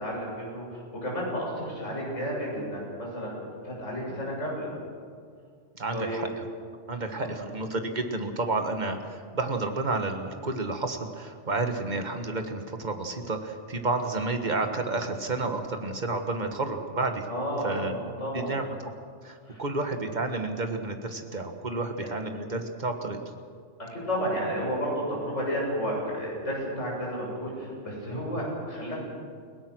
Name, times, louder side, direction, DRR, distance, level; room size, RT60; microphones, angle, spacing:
voice 1, 0.0-4.7 5.9-6.2 7.2-7.4 17.3-18.5 19.5-19.6 22.0-22.1 23.8-29.0, equal, 75° left, -3 dB, 7.3 m, -32 dB
voice 2, 5.8-6.4 6.9-17.3 17.6-17.9 18.3-18.6 19.2-23.2, right 3 dB, 35° right, 5 dB, 1.7 m, -30 dB
29.5 x 17.5 x 6.3 m, 2.2 s
omnidirectional pair, 1.3 m